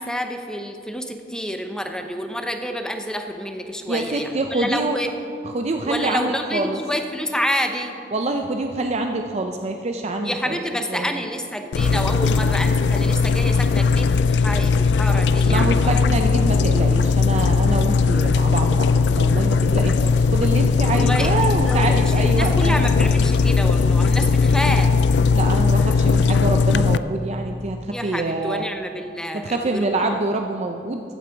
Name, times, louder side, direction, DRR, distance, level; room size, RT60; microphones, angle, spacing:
voice 1, 0.0-5.1 5.8-7.9 10.2-16.0 20.9-24.9 27.9-30.0, equal, 5° left, 6 dB, 0.7 m, -28 dB
voice 2, 3.9-5.0 5.4-6.8 8.1-10.6 10.9-11.0 15.4-22.9 25.3-28.7 29.3-31.0, right 2 dB, 40° right, 4 dB, 0.5 m, -25 dB
sound 1, 11.7-27.0, left 4 dB, 70° left, 0.3 m, -18 dB
14.5 x 8.9 x 4.6 m, 2.5 s
head